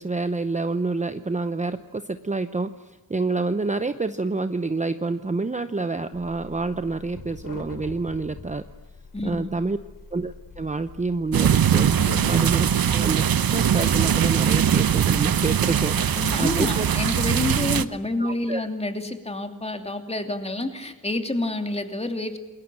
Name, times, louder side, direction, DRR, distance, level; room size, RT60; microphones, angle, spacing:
voice 1, 0.0-8.6 9.2-9.8 10.1-11.9 12.3-12.7 12.9-13.2 13.5-16.9 18.2-18.7, right 3 dB, 20° right, 10 dB, 0.8 m, -28 dB
sound 1, 6.1-13.5, left 4 dB, 65° left, 3.5 m, -42 dB
voice 2, 9.1-9.5 12.1-12.5 16.2-22.4, left 2 dB, 15° left, 6 dB, 2.9 m, -28 dB
sound 2, 11.3-17.9, right 8 dB, 75° right, 1.0 m, -21 dB
28.5 x 21.5 x 7.7 m, 1.1 s
wide cardioid pair, 145°, 36 cm